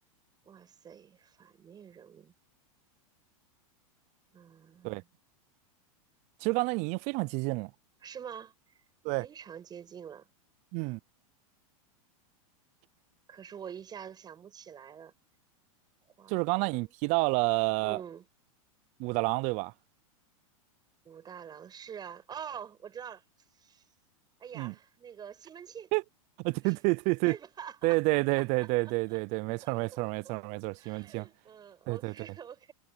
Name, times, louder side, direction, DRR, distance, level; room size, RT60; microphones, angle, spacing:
voice 1, 0.4-2.3 4.3-5.1 8.0-8.8 9.2-10.3 13.3-15.1 16.2-16.9 17.8-18.3 21.0-23.2 23.5-23.8 24.4-25.9 26.6-26.8 27.2-28.0 28.4-29.2 29.6-30.4 30.8-32.7, right 8 dB, 20° right, 7.7 m, -46 dB
voice 2, 6.4-7.7 9.0-9.3 10.7-11.0 16.3-18.0 19.0-19.7 24.5-24.7 25.9-26.0 26.4-27.4 27.8-31.3 31.9-32.1, right 26 dB, 40° right, 0.5 m, -29 dB
supercardioid pair, 135°, 18 cm